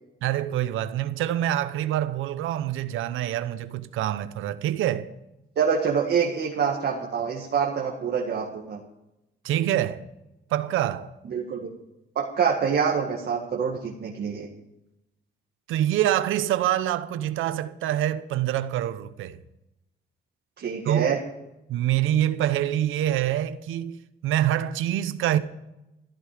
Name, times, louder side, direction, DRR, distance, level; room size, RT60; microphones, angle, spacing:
voice 1, 0.2-5.1 9.4-10.0 10.5-11.1 15.7-19.4 20.8-21.1 21.7-25.4, right 12 dB, 90° right, 0.9 m, -25 dB
voice 2, 5.6-8.8 11.3-11.7 12.2-14.5 20.6-21.2, right 6 dB, 55° right, 1.9 m, -26 dB
15.0 x 14.5 x 5.1 m
cardioid pair, 90°, 20 cm